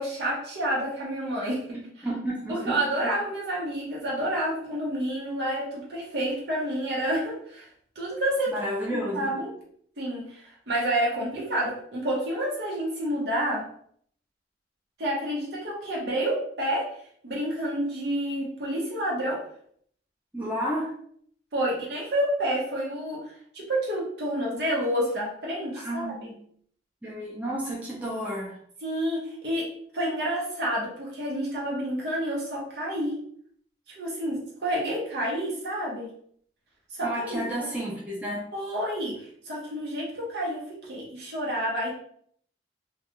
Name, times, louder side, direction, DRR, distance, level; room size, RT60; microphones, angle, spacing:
voice 1, 0.0-1.6 2.5-7.7 8.0-8.5 8.9-9.5 10.0-13.7 15.0-16.9 17.2-19.4 21.5-26.3 28.8-29.7 29.9-33.2 34.0-36.1 36.9-37.7 38.5-41.9, right 1 dB, 65° right, -3 dB, 0.8 m, -29 dB
voice 2, 1.7-2.8 3.0-3.1 8.5-9.3 20.3-20.9 25.7-26.3 27.0-28.6 37.0-38.4, equal, 10° right, -5 dB, 0.5 m, -31 dB
2.3 x 2.3 x 2.8 m, 0.63 s
head